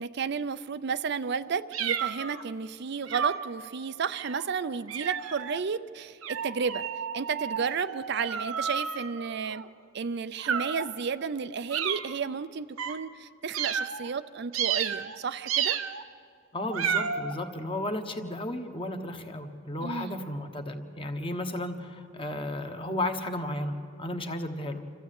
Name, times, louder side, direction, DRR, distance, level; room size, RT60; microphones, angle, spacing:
voice 1, 0.0-6.8 7.1-9.6 9.9-15.8 19.8-20.2, right 5 dB, 55° right, 13 dB, 0.5 m, -32 dB
sound 1, 1.7-2.4 3.1-3.5 4.1-4.5 4.9-5.6 6.2-9.7 10.4-10.9 11.7-12.2 12.8-13.0 13.5-14.1 14.5-15.2 15.5-16.0 16.7-17.3, right 7 dB, 90° right, 1.0 m, -31 dB
voice 2, 16.5-24.8, left 1 dB, 25° left, 6 dB, 1.3 m, -34 dB
26.5 x 14.0 x 8.3 m, 2.3 s
head